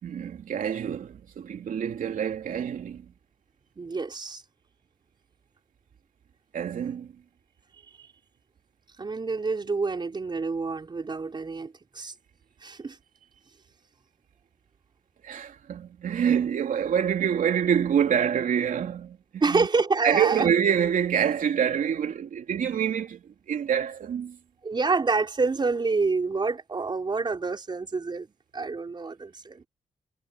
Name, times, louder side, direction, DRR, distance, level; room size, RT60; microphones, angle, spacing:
voice 1, 0.0-3.0 6.5-7.1 15.2-19.2 19.5-19.7 20.0-23.2 23.5-24.4, right 8 dB, 80° right, 3.2 m, -26 dB
voice 2, 3.8-4.4 7.7-8.1 9.0-12.1 12.6-13.0 19.4-20.5 24.6-28.3 28.5-29.7, right 4 dB, 35° right, 4.8 m, -27 dB
wide cardioid pair, 120°, 14 cm